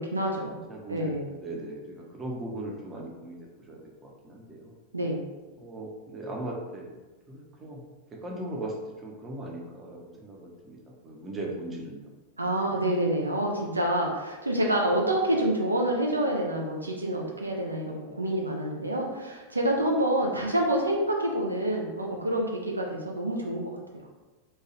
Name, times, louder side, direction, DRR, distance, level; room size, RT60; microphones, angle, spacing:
voice 1, 0.0-0.6 0.9-1.3 4.9-5.2 12.4-23.8, right 1 dB, 80° right, 0 dB, 0.4 m, -27 dB
voice 2, 0.7-1.1 1.4-4.7 5.6-7.0 7.3-7.8 8.1-8.7 9.0-12.1, right 1 dB, 20° right, -2 dB, 0.6 m, -38 dB
2.9 x 2.3 x 3.0 m, 1.2 s
figure-of-eight pair, 90°, 0 cm